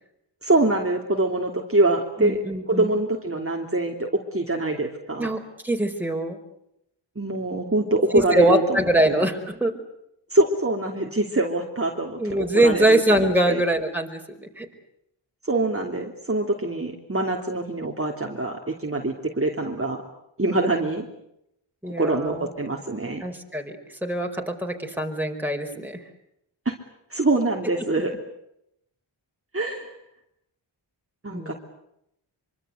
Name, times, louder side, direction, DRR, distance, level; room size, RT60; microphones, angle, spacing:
voice 1, 0.4-2.4 2.7-5.3 7.1-9.2 10.3-13.6 15.4-20.0 20.4-21.1 21.8-23.2 26.6-26.7 27.1-28.1 29.5-29.9 31.2-31.5, right 2 dB, 30° right, 1 dB, 3.0 m, -24 dB
voice 2, 2.2-2.9 5.2-6.4 8.1-9.7 12.2-14.7 21.8-22.4 23.2-23.8 24.0-26.0 31.3-31.5, right 1 dB, 5° right, 2 dB, 5.1 m, -23 dB
25.0 x 24.5 x 8.1 m, 0.80 s
cardioid pair, 60°, 47 cm